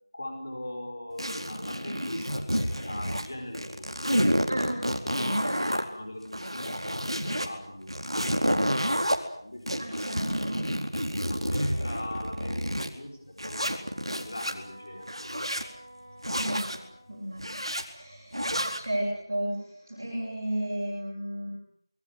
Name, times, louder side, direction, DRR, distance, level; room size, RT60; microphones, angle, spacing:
voice 1, 0.1-4.2 5.0-9.1 9.4-9.9 11.3-15.5, left 1 dB, 25° left, 3 dB, 4.9 m, -40 dB
sound 1, 1.2-3.3 3.5-5.8 6.2-7.5 7.9-9.2 9.7-12.9 13.4-14.5 15.0-15.7 16.2-16.8 17.4-17.8 18.3-18.8, equal, 90° right, 4.3 m, -29 dB
voice 2, 5.1-5.6 9.8-10.7 16.3-16.7 17.1-17.5 17.8-18.4 18.8-19.6 19.9-21.5, right 1 dB, 30° right, -4 dB, 6.7 m, -33 dB
Wind instrument woodwind instrument, 13.7-17.2, right 1 dB, 5° right, 7.2 m, -50 dB
25.0 x 21.5 x 8.0 m, 0.68 s
figure-of-eight pair, 175°, 3 cm